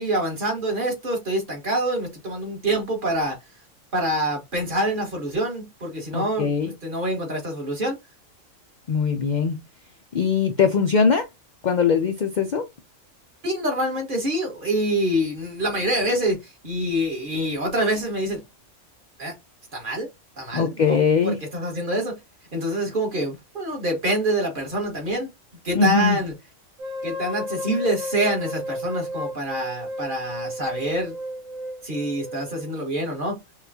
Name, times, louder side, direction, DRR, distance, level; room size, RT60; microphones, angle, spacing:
voice 1, 0.0-3.4 3.9-8.0 13.4-18.4 19.2-19.3 19.7-20.1 20.4-22.2 22.5-25.3 25.6-26.3 27.0-31.1 31.8-33.4, right 1 dB, 40° right, 1.7 m, -26 dB
voice 2, 6.1-6.7 8.9-9.6 10.1-11.3 11.6-12.7 20.5-21.4 25.8-26.2, left 5 dB, 65° left, 0.4 m, -21 dB
sound 1, 26.8-32.8, left 1 dB, 85° right, 1.6 m, -33 dB
5.5 x 2.3 x 2.8 m
omnidirectional pair, 1.4 m